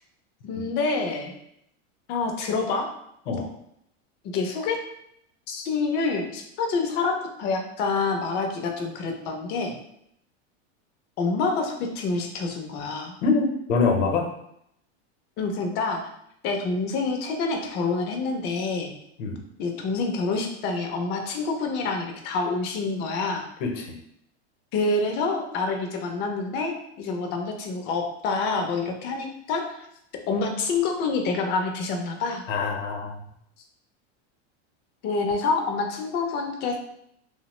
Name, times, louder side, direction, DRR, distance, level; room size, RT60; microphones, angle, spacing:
voice 1, 0.4-1.3 2.1-2.9 4.3-4.8 5.5-9.7 11.2-13.2 15.4-16.0 16.4-18.9 19.6-23.5 24.7-29.9 30.3-32.4 35.0-36.8, left 4 dB, 30° left, 3 dB, 0.4 m, -27 dB
voice 2, 13.2-14.3 19.2-19.4 23.6-24.0 32.5-33.2, left 4 dB, 80° left, 3 dB, 0.7 m, -24 dB
2.9 x 2.1 x 2.9 m, 0.75 s
supercardioid pair, 140°, 36 cm